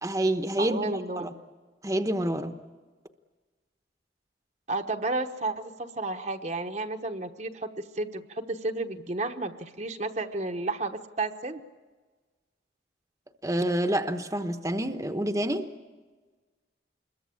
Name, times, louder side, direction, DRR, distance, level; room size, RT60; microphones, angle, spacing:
voice 1, 0.0-1.3 1.8-2.5 13.4-15.7, right 1 dB, 15° right, 7 dB, 1.0 m, -28 dB
voice 2, 0.6-1.3 4.7-11.6, right 2 dB, 40° right, 5 dB, 1.1 m, -32 dB
26.5 x 22.0 x 8.5 m, 1.3 s
head